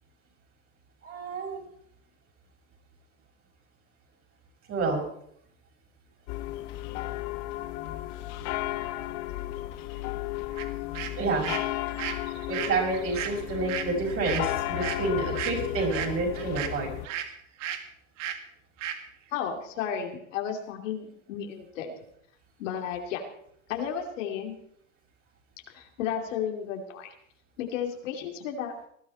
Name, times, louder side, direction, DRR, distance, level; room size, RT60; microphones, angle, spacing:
voice 1, 1.0-1.6 4.7-5.0 11.1-11.6 12.5-16.9, right 3 dB, 35° right, 0 dB, 6.2 m, -29 dB
sound 1, 6.3-17.1, left 15 dB, 55° left, 1.1 m, -34 dB
sound 2, 10.6-10.7 10.9-17.3 17.6-17.8 18.2-18.4 18.8-19.0, right 10 dB, 70° right, 2.0 m, -35 dB
voice 2, 19.3-21.9 22.6-23.2 23.7-24.6 25.7-27.1 27.6-28.9, left 8 dB, 75° left, 3 dB, 2.9 m, -33 dB
19.5 x 12.0 x 4.4 m, 0.68 s
supercardioid pair, 115°, 38 cm